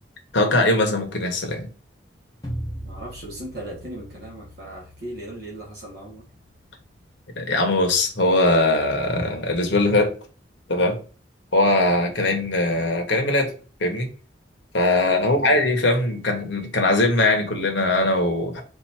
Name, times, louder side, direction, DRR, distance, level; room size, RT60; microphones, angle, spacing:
voice 1, 0.3-1.7 7.3-10.1 10.7-11.0 11.5-13.5 13.8-14.1 14.7-18.6, left 2 dB, 70° left, 1.2 m, -21 dB
sound 1, 2.4-7.5, equal, 20° left, 0.8 m, -40 dB
voice 2, 2.8-6.2 15.2-15.6, right 1 dB, 55° right, 1.5 m, -37 dB
4.5 x 2.7 x 4.3 m
head